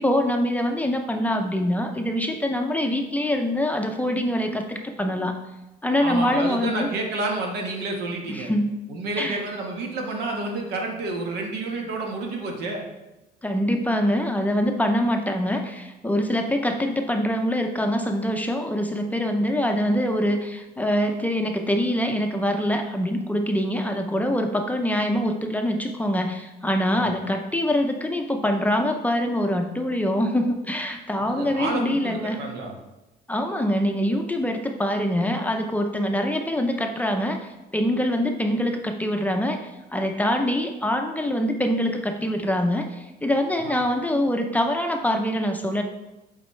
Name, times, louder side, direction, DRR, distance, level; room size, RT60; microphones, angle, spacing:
voice 1, 0.0-5.4 5.8-6.9 8.3-8.7 9.2-9.4 13.4-32.4 33.3-37.4 37.7-39.6 39.9-45.8, equal, 10° left, 3 dB, 0.6 m, -24 dB
voice 2, 6.0-8.5 8.9-12.8 26.9-27.0 31.2-32.7 43.6-43.8, right 2 dB, 75° right, 1 dB, 1.3 m, -30 dB
7.8 x 4.2 x 3.2 m, 1.0 s
cardioid pair, 110°, 17 cm